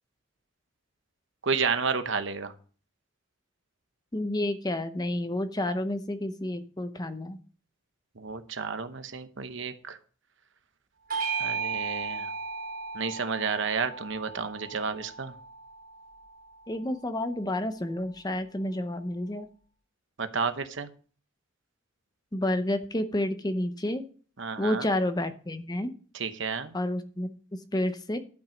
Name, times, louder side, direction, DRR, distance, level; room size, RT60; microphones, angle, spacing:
voice 1, 1.4-2.5 8.2-10.0 11.4-12.3 12.9-15.3 20.2-20.9 24.4-24.9 26.1-26.8, right 5 dB, 60° right, 10 dB, 0.9 m, -31 dB
voice 2, 4.1-7.4 16.7-19.5 22.3-24.0 24.6-25.9 26.7-28.2, left 1 dB, 20° left, 10 dB, 0.7 m, -30 dB
Bell / Doorbell, 11.1-15.9, right 5 dB, 45° right, 3.2 m, -35 dB
11.5 x 5.9 x 5.1 m, 0.41 s
head